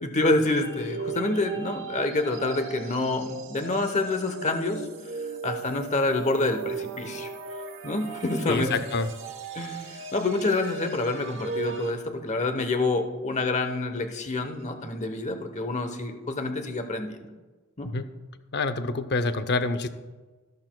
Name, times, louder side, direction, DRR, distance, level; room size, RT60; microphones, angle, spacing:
voice 1, 0.0-4.8 5.4-7.3 7.8-8.7 9.5-17.2 17.8-17.9, left 2 dB, 30° left, 7 dB, 0.9 m, -27 dB
sound 1, 0.6-11.9, right 4 dB, 60° right, 1.0 m, -37 dB
voice 2, 8.5-9.1 17.9-18.1 18.5-19.9, left 3 dB, 50° left, 11 dB, 0.6 m, -27 dB
14.0 x 12.0 x 2.3 m, 1.3 s
head